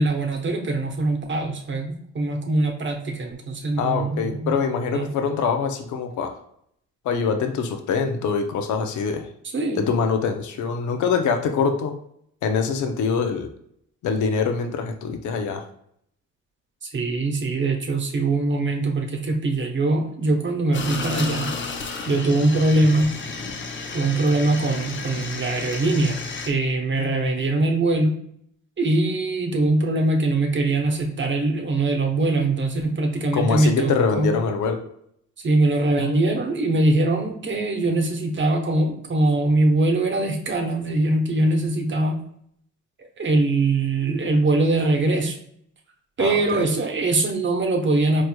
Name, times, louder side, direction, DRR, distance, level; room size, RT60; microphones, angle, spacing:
voice 1, 0.0-4.5 4.9-5.1 9.5-9.9 16.8-21.5 22.0-23.2 23.9-26.2 26.5-28.2 28.8-34.3 35.4-42.2 43.2-45.4 46.2-48.2, right 2 dB, 40° right, 2 dB, 0.9 m, -22 dB
voice 2, 3.8-6.3 7.0-9.3 9.8-12.0 12.4-13.5 14.0-15.6 33.3-34.8 46.2-46.7, left 5 dB, 75° left, 5 dB, 0.7 m, -24 dB
sound 1, 20.7-26.5, left 4 dB, 40° left, 0.7 m, -32 dB
4.6 x 3.1 x 2.2 m, 0.70 s
cardioid pair, 90°, 30 cm